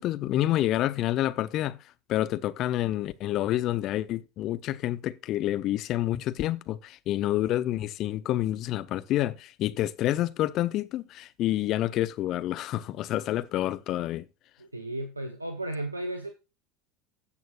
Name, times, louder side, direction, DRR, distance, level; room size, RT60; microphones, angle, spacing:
voice 1, 0.0-1.8 2.1-14.3, left 14 dB, 45° left, 0.7 m, -28 dB
voice 2, 14.6-16.3, right 1 dB, 85° right, 0.9 m, -34 dB
16.5 x 6.3 x 2.4 m
figure-of-eight pair, 75°, 0 cm